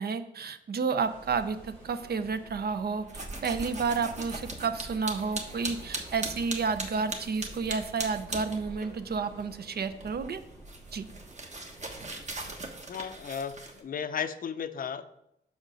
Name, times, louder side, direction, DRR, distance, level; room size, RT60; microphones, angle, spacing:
voice 1, 0.0-10.4 10.9-11.1, right 5 dB, 55° right, 11 dB, 0.6 m, -31 dB
sound 1, 1.0-12.0, right 1 dB, 90° right, 2.5 m, -52 dB
sound 2, 3.1-9.0 9.2-13.8, right 2 dB, 35° right, 1.2 m, -39 dB
voice 2, 12.9-15.0, left 7 dB, 45° left, 11 dB, 0.5 m, -34 dB
5.0 x 5.0 x 6.3 m, 0.81 s
cardioid pair, 80°, 20 cm